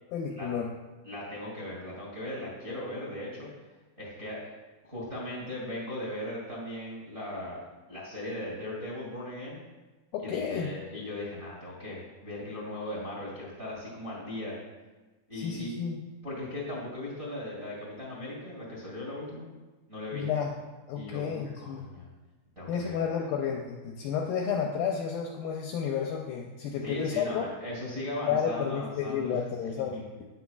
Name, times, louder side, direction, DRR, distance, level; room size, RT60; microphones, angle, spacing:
voice 1, 0.1-0.7 10.1-10.7 15.3-16.0 20.1-20.5 20.9-21.9 22.7-27.4 28.2-29.9, left 7 dB, 80° left, 1 dB, 2.2 m, -31 dB
voice 2, 1.0-3.5 4.0-4.5 4.8-9.6 10.2-14.6 15.3-15.7 16.2-19.5 19.9-20.3 20.9-22.0 22.5-23.0 26.8-29.4 29.8-30.0, left 1 dB, 20° right, -3 dB, 1.6 m, -38 dB
11.5 x 9.6 x 2.4 m, 1.2 s
omnidirectional pair, 4.8 m